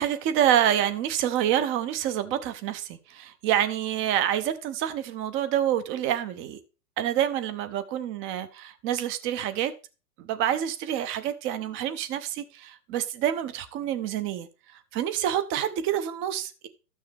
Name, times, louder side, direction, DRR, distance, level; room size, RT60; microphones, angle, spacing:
voice 1, 0.0-6.6 7.0-9.7 10.2-14.5 14.9-16.7, right 10 dB, 25° right, 0.8 m, -27 dB
12.5 x 6.4 x 3.5 m
hypercardioid pair, 125°, 49 cm